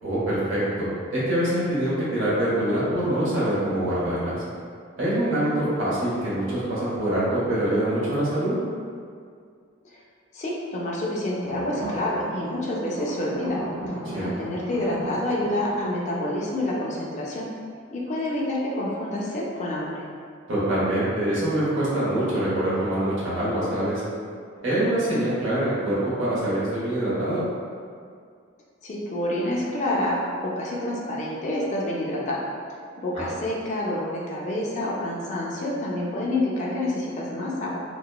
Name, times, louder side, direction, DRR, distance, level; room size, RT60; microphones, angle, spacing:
voice 1, 0.0-4.4 5.0-8.5 14.1-14.2 20.5-24.0 24.6-27.4 33.1-33.2, right 1 dB, 65° right, -9 dB, 1.0 m, -24 dB
voice 2, 10.3-13.6 13.9-17.5 17.9-20.0 28.8-32.4 33.0-37.8, left 1 dB, 35° left, -4 dB, 0.4 m, -28 dB
sound 1, 11.4-16.8, right 1 dB, 85° right, 0.4 m, -37 dB
2.9 x 2.0 x 2.2 m, 2.2 s
head